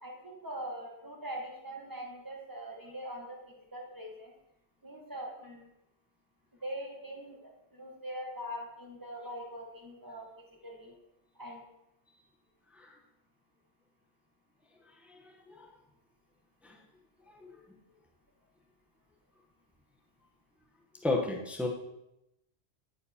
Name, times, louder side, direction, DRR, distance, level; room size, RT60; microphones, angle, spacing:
voice 1, 0.0-4.3 4.8-5.7 6.6-10.9 11.4-11.6 17.5-17.6, equal, 20° right, -1 dB, 1.3 m, -42 dB
voice 2, 14.9-15.8 16.6-16.8 17.3-17.5 21.0-21.7, left 2 dB, ahead, 0 dB, 0.8 m, -34 dB
9.6 x 9.4 x 2.8 m, 0.87 s
omnidirectional pair, 1.2 m